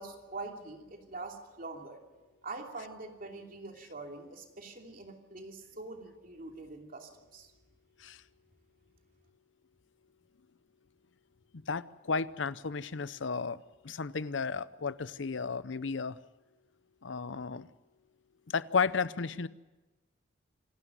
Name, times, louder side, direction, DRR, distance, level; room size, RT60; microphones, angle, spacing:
voice 1, 0.0-2.0 2.4-7.5, right 3 dB, 50° right, 3 dB, 2.8 m, -44 dB
voice 2, 11.7-13.6 13.8-16.2 17.0-17.7 18.5-19.5, left 5 dB, 80° left, 17 dB, 0.7 m, -33 dB
26.5 x 12.0 x 9.3 m, 1.1 s
head